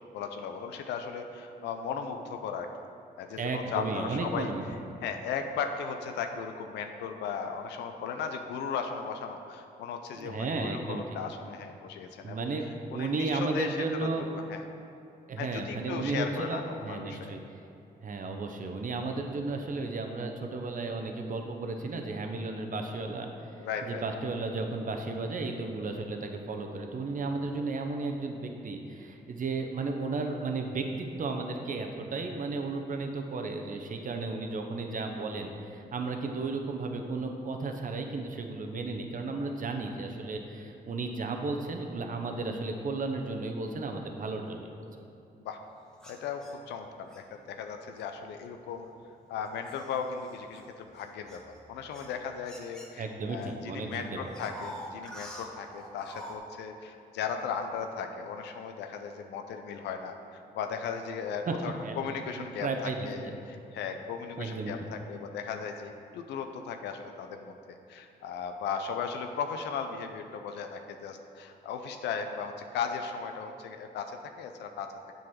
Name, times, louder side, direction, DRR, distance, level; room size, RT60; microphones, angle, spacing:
voice 1, 0.1-2.7 3.2-4.5 5.0-12.5 12.9-14.6 15.4-17.4 23.6-24.0 45.4-45.6 46.1-48.9 49.3-74.9, left 6 dB, 90° left, 6 dB, 0.5 m, -37 dB
voice 2, 3.4-4.7 10.1-11.0 12.2-12.7 12.9-14.3 15.3-17.4 18.0-44.9 53.0-54.3 61.5-61.6 61.8-62.0 62.4-63.4 64.4-64.7, right 3 dB, 50° right, 4 dB, 0.8 m, -34 dB
sound 1, 46.0-47.2 48.0-48.2 48.8-53.5 53.7-56.4, equal, 5° left, 1.4 m, -47 dB
7.4 x 3.9 x 6.2 m, 2.7 s
supercardioid pair, 50°, 17 cm